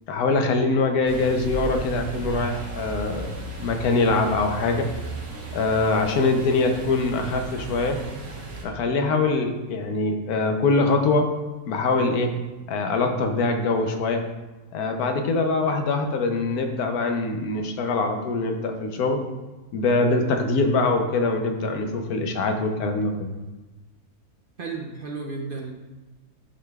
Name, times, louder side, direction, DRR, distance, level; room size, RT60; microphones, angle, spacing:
voice 1, 0.1-3.3 3.6-4.9 5.5-8.0 8.6-11.3 11.7-12.3 12.7-14.2 14.7-19.2 19.7-23.3, left 3 dB, 80° left, 5 dB, 1.2 m, -23 dB
sound 1, 1.1-8.6, right 2 dB, 70° right, 1.7 m, -35 dB
voice 2, 24.6-25.7, right 4 dB, 50° right, 1 dB, 0.6 m, -33 dB
9.8 x 5.1 x 2.3 m, 1.1 s
omnidirectional pair, 1.6 m